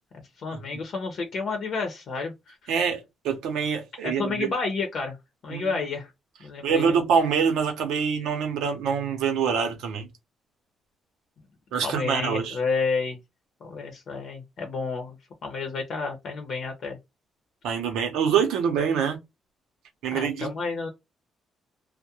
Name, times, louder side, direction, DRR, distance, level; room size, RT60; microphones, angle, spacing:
voice 1, 0.4-2.7 4.0-5.2 5.4-6.1 6.4-6.9 11.8-13.2 13.6-15.2 15.4-17.0 20.1-20.9, left 4 dB, 60° left, 0.7 m, -30 dB
voice 2, 2.7-4.5 5.5-5.8 6.6-10.1 11.7-12.6 17.6-19.2 20.0-20.5, right 6 dB, 90° right, 0.7 m, -25 dB
2.3 x 2.1 x 2.8 m
cardioid pair, 90°, 0 cm